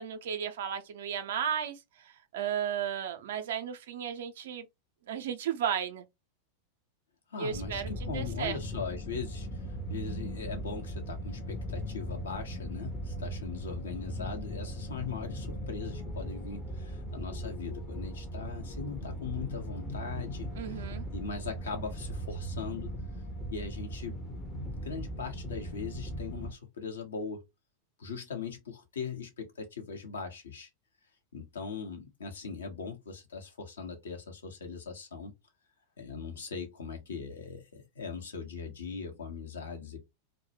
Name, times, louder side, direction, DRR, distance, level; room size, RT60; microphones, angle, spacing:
voice 1, 0.0-4.6 5.1-6.0 7.4-8.6 20.6-21.0, right 8 dB, 60° right, 0.4 m, -34 dB
voice 2, 7.3-20.9 21.1-23.0 23.5-27.4 28.0-30.7 31.3-35.3 36.0-40.0, left 5 dB, 65° left, 0.7 m, -40 dB
sound 1, 7.5-26.5, equal, 10° left, 0.5 m, -38 dB
2.1 x 2.1 x 3.1 m
figure-of-eight pair, 90°, 0 cm